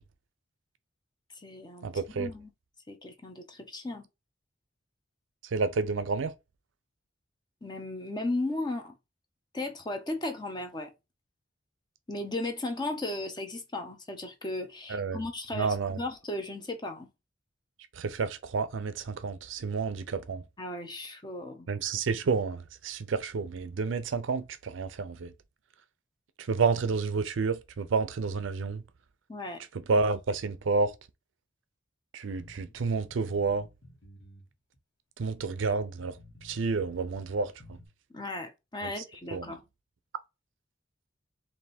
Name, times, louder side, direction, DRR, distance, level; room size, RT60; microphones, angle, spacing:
voice 1, 1.3-2.5 2.9-4.1 7.6-9.0 9.5-10.9 12.1-17.1 20.6-21.7 29.3-29.6 38.1-39.6, left 2 dB, 25° left, 0.8 m, -36 dB
voice 2, 1.8-2.3 5.5-6.3 14.9-15.2 15.6-16.0 18.0-20.4 21.7-25.3 26.5-28.8 29.9-30.9 32.1-33.7 35.2-36.2 36.4-37.5 39.3-39.4, right 4 dB, 75° right, 0.5 m, -30 dB
sound 1, 32.4-34.5 34.7-34.8 35.4-35.5 36.0-37.9, left 1 dB, 65° left, 1.5 m, -53 dB
3.3 x 2.6 x 4.2 m
head